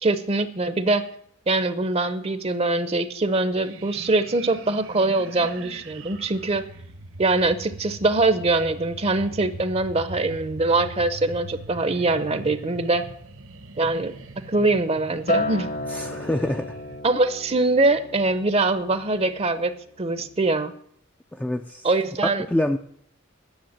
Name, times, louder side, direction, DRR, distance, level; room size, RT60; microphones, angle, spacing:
voice 1, 0.0-1.0 1.5-6.6 7.2-13.0 13.8-14.1 14.5-15.7 17.0-19.7 20.0-20.7 21.8-22.4, right 2 dB, 30° right, 0.7 m, -23 dB
sound 1, 3.5-17.0, right 2 dB, 70° right, 1.1 m, -41 dB
Acoustic guitar, 15.3-19.7 20.1-20.5, left 2 dB, 40° left, 0.9 m, -32 dB
voice 2, 15.9-16.8 21.3-21.9 22.2-22.8, left 1 dB, 5° left, 0.4 m, -26 dB
10.5 x 6.6 x 8.8 m
head